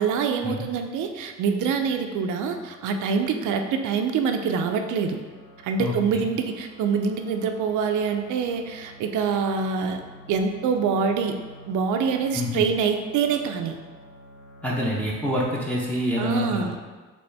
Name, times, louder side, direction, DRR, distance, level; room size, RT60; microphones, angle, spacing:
voice 1, 0.0-5.2 5.6-10.0 10.3-11.4 11.7-13.8 16.2-16.8, right 6 dB, 80° right, 5 dB, 0.4 m, -25 dB
sound 1, 5.2-15.6, equal, 80° left, 0.8 m, -49 dB
voice 2, 5.8-6.3 12.3-12.6 14.6-16.8, left 1 dB, 5° left, -5 dB, 0.6 m, -27 dB
4.0 x 3.1 x 3.3 m, 1.4 s
cardioid pair, 90°, 30 cm